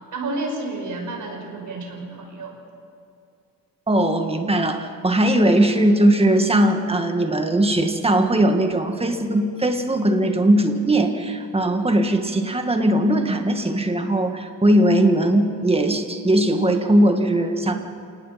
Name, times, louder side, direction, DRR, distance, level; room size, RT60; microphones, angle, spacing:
voice 1, 0.1-2.5, right 2 dB, 60° right, 2 dB, 5.3 m, -30 dB
voice 2, 3.9-17.7, right 1 dB, 15° right, 5 dB, 1.7 m, -19 dB
29.0 x 18.5 x 5.8 m, 2.5 s
wide cardioid pair, 145°, 35 cm